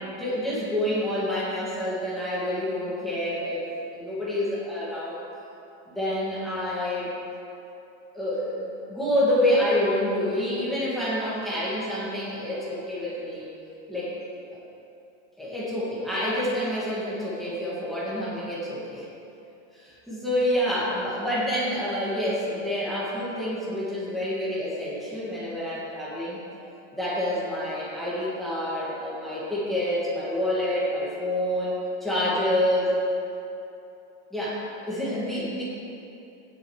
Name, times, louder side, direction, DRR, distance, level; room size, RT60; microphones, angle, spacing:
voice 1, 0.0-3.7 3.9-5.2 5.9-7.1 8.1-13.5 13.9-14.1 15.4-19.1 19.7-26.4 26.9-31.7 32.0-32.9 34.3-35.6, left 1 dB, ahead, -9 dB, 2.0 m, -27 dB
14.5 x 10.5 x 3.2 m, 2.8 s
supercardioid pair, 170°, 36 cm